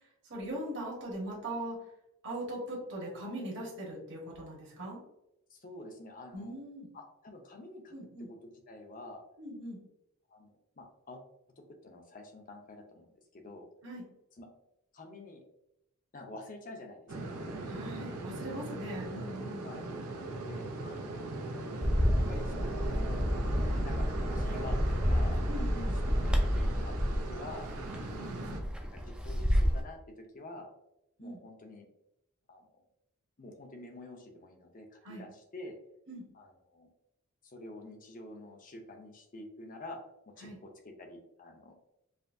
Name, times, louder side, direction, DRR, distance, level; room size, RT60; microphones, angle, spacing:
voice 1, 0.3-1.8 2.2-5.0 6.3-6.9 7.9-8.3 9.4-9.8 13.8-14.1 17.7-19.7 25.5-25.9 28.2-28.6 31.2-31.4 35.0-35.2 36.1-36.3 40.4-40.6, right 1 dB, 55° right, -4 dB, 1.3 m, -40 dB
voice 2, 5.5-6.6 6.9-7.9 8.3-9.2 10.3-11.2 11.6-13.7 14.4-14.5 14.9-15.4 16.1-17.6 19.6-19.8 20.4-21.4 22.1-24.0 24.3-25.9 26.1-27.7 28.2-28.6 28.9-30.7 31.2-31.9 32.5-32.7 33.4-35.8 36.3-36.9 37.4-40.0 40.3-41.7, left 2 dB, 35° left, 3 dB, 0.7 m, -48 dB
sound 1, 17.1-28.6, right 2 dB, 80° right, 0.7 m, -39 dB
Bird, 21.8-29.8, equal, 5° right, 0.4 m, -30 dB
5.0 x 2.7 x 2.6 m, 0.85 s
head